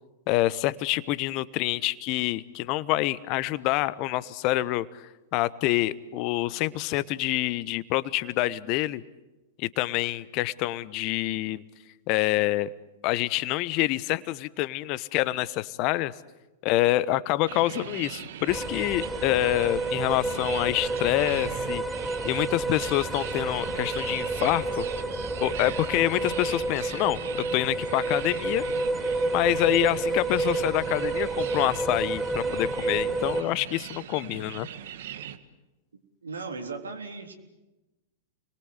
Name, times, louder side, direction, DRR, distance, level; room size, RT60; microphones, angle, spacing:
voice 1, 0.3-4.9 5.3-9.0 9.6-11.6 12.1-12.7 13.0-16.1 16.6-21.8 22.2-24.8 25.4-28.6 29.3-34.7, left 16 dB, 45° left, 17 dB, 1.0 m, -26 dB
sound 1, 17.5-35.4, right 10 dB, 60° right, 1.7 m, -40 dB
sound 2, 18.5-33.4, right 2 dB, 5° right, 0.9 m, -30 dB
voice 2, 36.2-37.3, right 4 dB, 80° right, 5 dB, 3.7 m, -36 dB
29.5 x 22.0 x 8.2 m, 1.0 s
figure-of-eight pair, 100°, 0 cm